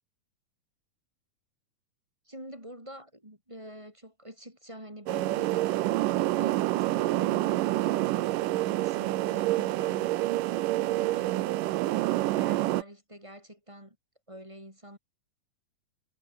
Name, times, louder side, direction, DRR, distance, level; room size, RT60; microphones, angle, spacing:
voice 1, 2.3-10.3 10.9-11.7 12.3-14.0 14.3-15.0, equal, 10° right, 6.3 m, -47 dB
sound 1, 5.1-12.8, right 17 dB, 85° right, 2.4 m, -27 dB
omnidirectional pair, 3.9 m